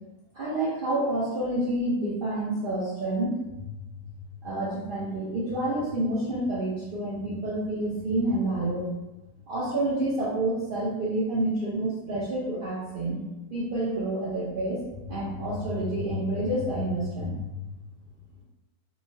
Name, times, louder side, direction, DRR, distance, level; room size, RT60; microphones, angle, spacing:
voice 1, 0.3-3.6 4.4-8.9 9.5-13.2 13.5-17.6, right 1 dB, 65° right, -8 dB, 0.5 m, -28 dB
2.9 x 2.3 x 2.6 m, 1.0 s
omnidirectional pair, 1.6 m